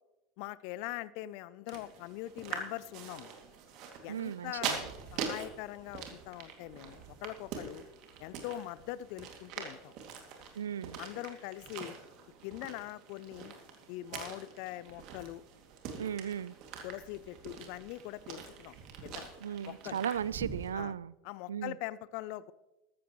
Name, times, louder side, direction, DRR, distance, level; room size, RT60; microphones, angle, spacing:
voice 1, 0.4-3.4 4.0-4.8 5.1-7.8 8.2-9.9 11.0-12.0 12.4-13.5 13.9-15.4 16.8-18.8 19.0-19.3 19.6-20.0 20.7-20.9 21.2-22.5, left 16 dB, 60° left, 19 dB, 0.5 m, -42 dB
sound 1, 1.7-20.7, right 6 dB, 55° right, 2.4 m, -44 dB
voice 2, 4.1-4.8 10.6-11.0 16.0-16.6 19.4-21.1 21.5-21.7, right 8 dB, 85° right, 21 dB, 0.3 m, -36 dB
14.0 x 13.5 x 3.1 m, 1.0 s
hypercardioid pair, 80°, 0 cm